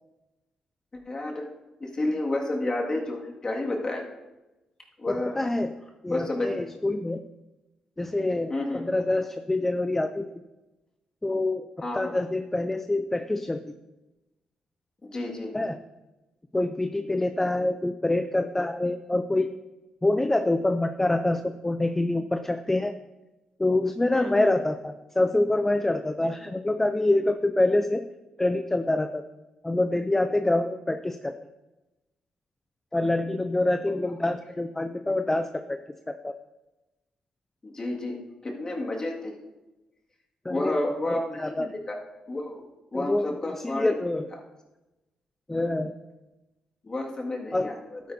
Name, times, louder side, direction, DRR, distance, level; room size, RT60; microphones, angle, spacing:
voice 1, 1.1-1.5 1.8-4.0 5.0-5.4 6.1-6.6 8.5-8.8 11.8-12.2 15.0-15.5 24.1-24.5 37.6-38.2 38.4-39.3 40.5-42.0 42.3-42.6 42.9-43.9 46.8-48.0, left 2 dB, 30° left, -1 dB, 2.0 m, -30 dB
voice 2, 5.1-5.7 6.0-7.2 8.0-10.3 11.2-11.7 11.9-13.6 15.5-15.8 16.5-19.5 20.0-23.0 23.6-28.0 28.4-29.2 29.6-31.3 32.9-35.8 36.1-36.3 40.4-40.8 41.1-41.7 42.9-44.3 45.5-45.9 47.5-47.7, left 2 dB, 15° left, 8 dB, 0.4 m, -26 dB
12.0 x 9.5 x 2.7 m, 1.0 s
cardioid pair, 95°, 2 cm